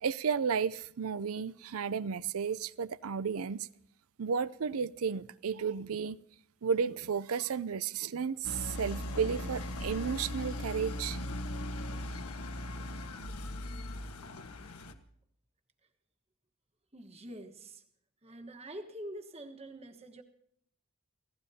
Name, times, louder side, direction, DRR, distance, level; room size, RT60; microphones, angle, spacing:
voice 1, 0.0-3.7 4.2-6.2 6.6-11.2, right 6 dB, 75° right, 0.5 m, -33 dB
sound 1, 8.4-14.9, left 1 dB, 85° left, 1.4 m, -39 dB
voice 2, 16.9-17.8 18.2-20.2, right 1 dB, 25° right, 1.3 m, -46 dB
29.5 x 16.5 x 2.8 m
head